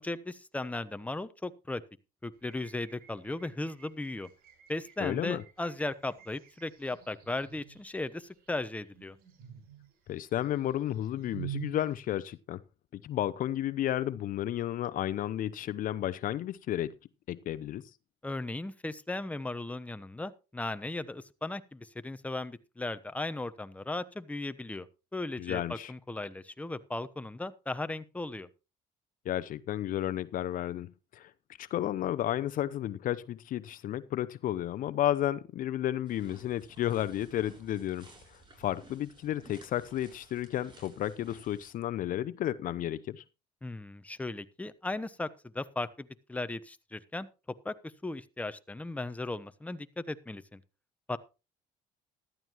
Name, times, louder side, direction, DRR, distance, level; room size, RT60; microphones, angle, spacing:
voice 1, 0.0-1.8 2.2-4.3 4.7-9.2 18.2-24.9 25.1-28.5 43.6-45.3 45.5-47.3 47.6-47.7 48.0-50.6 51.1-51.2, left 2 dB, 10° left, 0.9 m, -37 dB
sound 1, 2.4-12.3, right 13 dB, 70° right, 6.3 m, -48 dB
voice 2, 5.0-5.4 10.1-12.6 12.9-16.9 17.3-17.8 25.4-25.9 29.3-31.3 31.6-43.2, left 12 dB, 60° left, 0.6 m, -32 dB
sound 2, 36.0-41.7, right 2 dB, 30° right, 7.8 m, -56 dB
14.5 x 12.5 x 3.0 m
cardioid pair, 90°, 16 cm